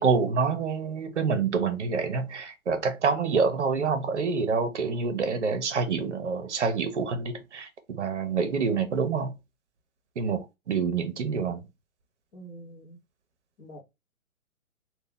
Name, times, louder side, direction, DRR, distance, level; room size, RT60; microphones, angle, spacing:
voice 1, 0.0-9.3 10.2-11.7, right 5 dB, 55° right, 0.9 m, -27 dB
voice 2, 12.3-13.0 13.6-13.8, right 1 dB, 15° left, 0.8 m, -45 dB
3.1 x 2.4 x 3.8 m
figure-of-eight pair, 130°, 42 cm